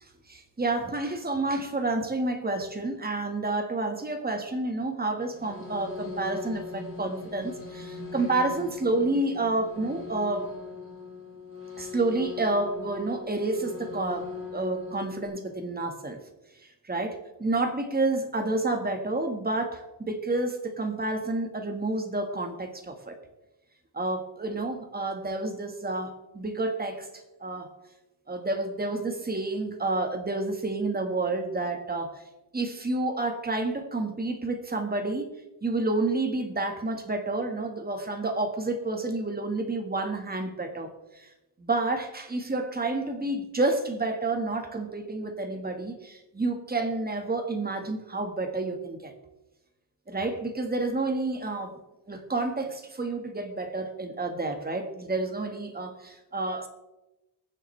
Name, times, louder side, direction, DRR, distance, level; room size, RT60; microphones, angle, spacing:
voice 1, 0.3-10.5 11.8-16.2 16.8-23.2 23.9-27.1 27.4-27.7 28.3-32.2 32.5-35.3 35.6-41.3 41.6-49.1 50.1-51.8 52.1-56.7, right 2 dB, 20° right, 5 dB, 1.6 m, -29 dB
sound 1, 5.3-15.3, left 5 dB, 30° left, 3.9 m, -40 dB
22.5 x 7.5 x 3.3 m, 1.0 s
wide cardioid pair, 130°, 43 cm